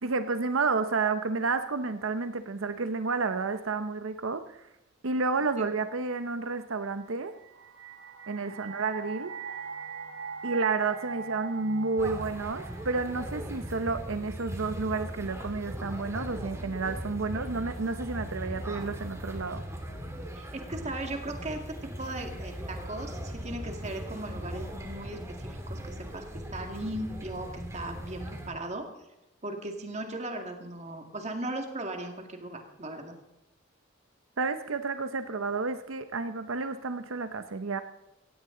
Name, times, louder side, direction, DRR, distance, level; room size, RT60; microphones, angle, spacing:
voice 1, 0.0-4.6 5.0-7.3 8.3-9.3 10.4-19.6 34.4-37.8, right 4 dB, 90° right, 9 dB, 0.8 m, -31 dB
sound 1, 7.2-14.3, right 5 dB, 65° right, 1.5 m, -41 dB
voice 2, 8.4-8.7 20.4-28.9 29.4-33.2, right 1 dB, 35° right, 4 dB, 2.0 m, -38 dB
sound 2, 12.0-28.5, equal, 15° right, 2.0 m, -40 dB
sound 3, 13.2-25.2, left 1 dB, 50° left, 5.0 m, -47 dB
17.0 x 16.0 x 3.8 m, 0.90 s
head